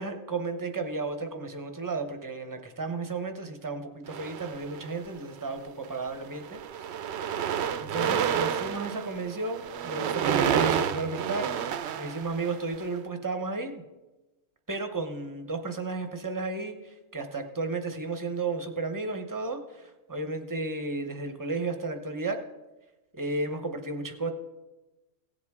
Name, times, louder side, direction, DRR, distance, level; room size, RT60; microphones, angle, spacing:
voice 1, 0.0-6.9 7.8-13.8 14.7-22.4 23.1-24.3, right 3 dB, 20° right, 7 dB, 0.7 m, -33 dB
sound 1, 4.1-5.1 5.8-6.1 6.3-12.8, right 8 dB, 65° right, 0.7 m, -30 dB
16.5 x 7.8 x 3.6 m, 1.1 s
omnidirectional pair, 1.4 m